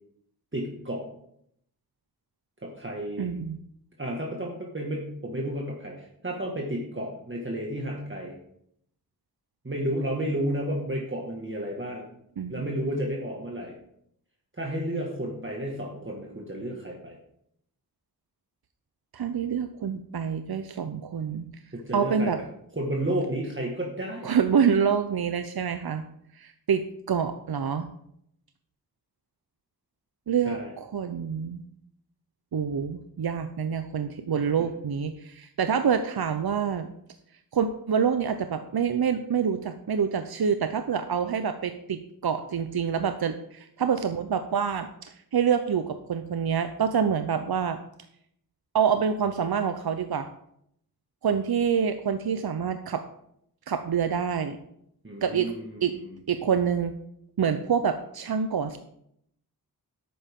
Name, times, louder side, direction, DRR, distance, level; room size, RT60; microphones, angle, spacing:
voice 1, 0.5-1.0 2.6-3.3 4.0-8.4 9.6-12.1 12.5-13.7 14.5-17.2 21.7-22.3 22.7-24.3 30.5-30.7 34.3-34.7 55.0-56.1, right 1 dB, 30° right, -1 dB, 1.7 m, -32 dB
voice 2, 3.2-3.6 12.4-12.7 19.1-21.5 21.9-22.4 24.2-26.0 26.3-27.9 30.3-31.6 32.5-36.9 37.5-47.8 48.7-50.3 51.2-53.0 53.7-54.6 55.2-55.5 55.8-55.9 56.3-56.9 57.4-58.8, right 7 dB, 80° right, 8 dB, 0.7 m, -26 dB
11.0 x 8.7 x 3.6 m, 0.72 s
wide cardioid pair, 75°, 37 cm